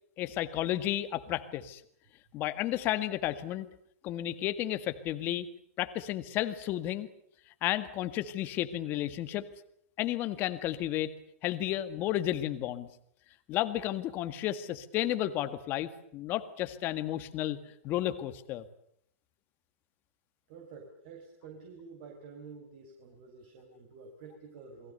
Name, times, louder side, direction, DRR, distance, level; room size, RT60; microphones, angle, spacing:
voice 1, 0.2-1.8 2.3-3.7 4.0-5.5 5.8-7.1 7.6-9.4 10.0-11.1 11.4-12.9 13.5-17.6 17.8-18.6, left 13 dB, 25° left, 11 dB, 1.9 m, -32 dB
voice 2, 20.5-24.9, right 5 dB, 40° right, 4 dB, 5.2 m, -49 dB
29.0 x 22.5 x 6.8 m, 0.70 s
hypercardioid pair, 165°, 8 cm